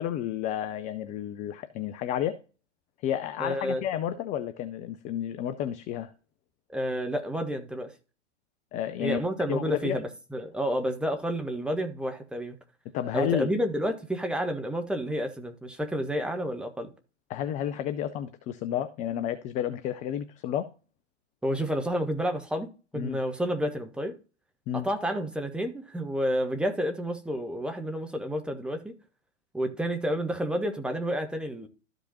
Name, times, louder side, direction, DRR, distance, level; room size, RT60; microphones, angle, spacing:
voice 1, 0.0-2.4 3.0-6.1 8.7-9.2 9.5-10.0 12.9-13.5 17.3-20.7 22.9-23.2 24.7-24.9, left 10 dB, 20° left, 0.4 m, -31 dB
voice 2, 3.4-3.8 6.7-7.9 9.0-12.6 13.1-16.9 21.4-22.7 22.9-24.2 24.7-28.9 29.5-31.7, equal, 5° right, 1.0 m, -30 dB
13.0 x 5.2 x 2.7 m
figure-of-eight pair, 100°, 36 cm